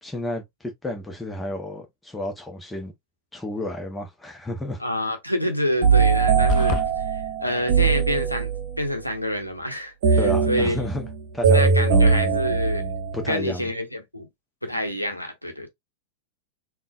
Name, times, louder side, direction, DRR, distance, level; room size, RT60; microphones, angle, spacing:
voice 1, 0.0-2.9 3.3-4.8 10.2-11.0 11.3-12.1 13.1-13.7, left 1 dB, 10° left, 0.9 m, -31 dB
voice 2, 4.8-10.8 11.5-12.9 13.3-14.3 14.6-15.7, left 1 dB, 90° left, 0.7 m, -27 dB
sound 1, 5.8-8.8 10.0-13.3, right 5 dB, 55° right, 1.0 m, -21 dB
sound 2, 6.5-6.9, left 11 dB, 40° left, 0.4 m, -26 dB
3.7 x 2.4 x 2.4 m
figure-of-eight pair, 90°, 0 cm